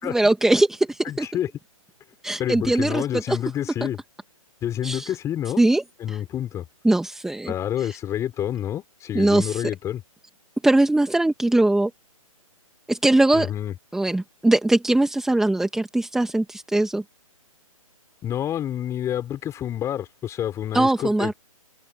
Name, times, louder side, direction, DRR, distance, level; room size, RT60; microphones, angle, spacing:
voice 1, 0.0-1.3 2.2-3.4 4.8-5.1 5.6-5.8 6.1-6.2 6.8-7.5 7.8-8.0 9.1-9.6 10.6-11.9 12.9-13.5 13.9-17.0 20.7-21.3, right 2 dB, 5° right, 2.5 m, -21 dB
voice 2, 1.0-1.5 2.4-4.0 4.6-5.6 6.0-6.6 7.5-10.0 13.3-13.7 18.2-21.3, left 11 dB, 15° left, 6.3 m, -28 dB
figure-of-eight pair, 130°, 18 cm